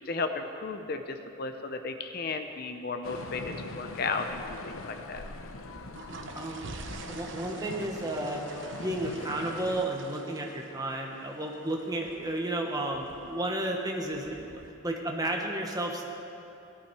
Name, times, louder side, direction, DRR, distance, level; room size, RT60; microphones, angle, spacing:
voice 1, 0.0-5.2, left 4 dB, 45° left, 7 dB, 0.6 m, -34 dB
sound 1, 3.0-9.9, left 2 dB, 85° left, 0.8 m, -42 dB
sound 2, 5.7-14.7, right 3 dB, 60° right, 1.0 m, -47 dB
voice 2, 6.3-6.7 7.1-8.4 8.8-16.0, right 1 dB, 20° right, 1 dB, 1.3 m, -32 dB
17.5 x 12.0 x 4.8 m, 2.8 s
head